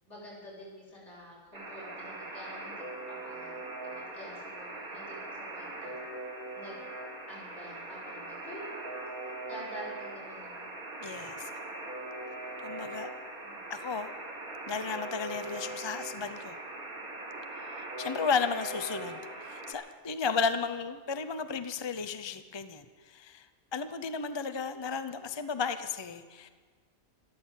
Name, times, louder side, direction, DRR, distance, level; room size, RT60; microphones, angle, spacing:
voice 1, 0.0-6.0 6.5-6.8 7.3-8.7 9.2-10.6 13.4-13.6, equal, 50° left, -6 dB, 6.8 m, -48 dB
Alarm, 1.5-19.7, right 2 dB, 85° right, 2.7 m, -41 dB
voice 2, 11.0-11.5 12.6-13.1 13.7-14.1 14.7-16.6 18.0-23.5 23.7-26.5, left 5 dB, 30° left, 10 dB, 0.5 m, -34 dB
13.5 x 13.5 x 8.2 m, 1.5 s
omnidirectional pair, 1.5 m